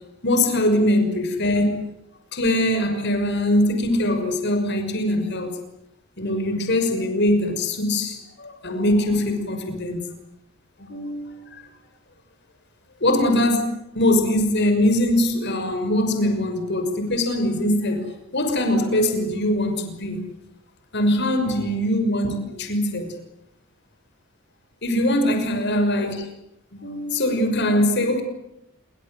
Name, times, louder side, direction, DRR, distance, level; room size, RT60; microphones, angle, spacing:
voice 1, 0.2-1.8 2.3-5.6 6.2-10.1 10.8-11.4 13.0-13.6 13.9-18.1 18.3-20.2 20.9-23.1 24.8-26.3 26.7-28.2, left 1 dB, 50° left, 6 dB, 6.0 m, -22 dB
27.5 x 25.0 x 7.9 m, 0.84 s
head